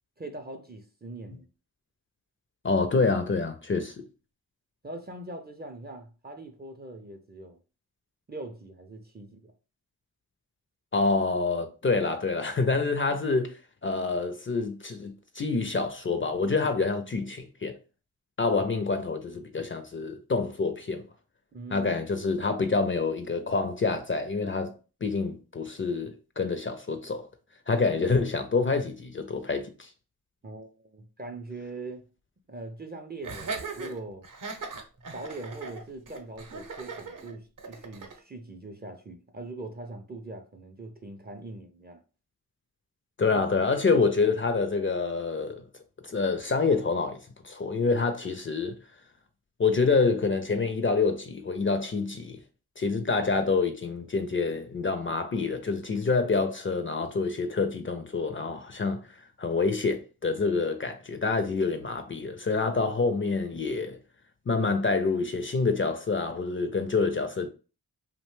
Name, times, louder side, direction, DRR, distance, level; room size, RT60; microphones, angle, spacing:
voice 1, 0.2-1.5 4.8-7.6 8.3-9.5 21.5-22.0 30.4-32.1 32.5-34.2 35.1-42.0 43.3-43.4, right 2 dB, 25° right, 0.5 m, -41 dB
voice 2, 2.6-3.9 10.9-17.8 18.4-21.0 21.7-24.7 25.0-27.3 27.7-29.9 43.2-45.6 46.0-48.8 49.6-52.4 52.8-64.0 64.5-67.5, left 4 dB, 30° left, 0.4 m, -27 dB
Laughter, 33.2-38.2, right 4 dB, 50° right, 0.7 m, -39 dB
2.7 x 2.1 x 3.1 m
cardioid pair, 45°, 39 cm